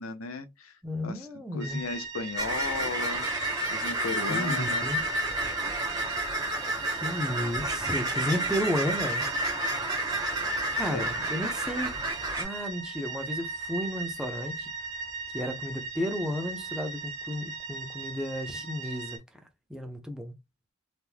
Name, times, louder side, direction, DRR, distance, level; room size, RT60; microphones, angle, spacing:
voice 1, 0.0-0.7 1.0-3.3 3.7-4.8 10.7-11.0, left 3 dB, 85° left, 0.8 m, -36 dB
voice 2, 0.8-1.8 4.3-5.0 7.0-9.3 10.7-11.9 12.3-14.7 15.3-19.2 19.7-20.3, equal, 5° right, 0.8 m, -33 dB
sound 1, 1.6-19.2, right 3 dB, 65° right, 1.3 m, -39 dB
sound 2, 2.4-12.4, right 1 dB, 20° right, 1.4 m, -30 dB
3.7 x 3.0 x 2.2 m
head